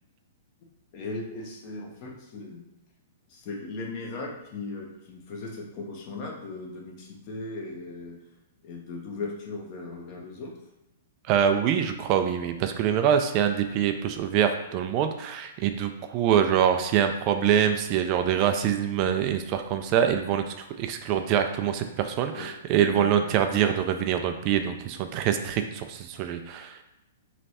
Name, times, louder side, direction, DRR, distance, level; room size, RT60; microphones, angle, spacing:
voice 1, 0.9-2.6 3.3-8.2 8.6-10.5 22.4-22.5 22.8-23.3, left 3 dB, 45° left, 0 dB, 1.0 m, -38 dB
voice 2, 11.3-26.8, right 9 dB, 40° right, 7 dB, 0.4 m, -25 dB
3.3 x 3.1 x 4.1 m, 0.93 s
hypercardioid pair, 130°, 0 cm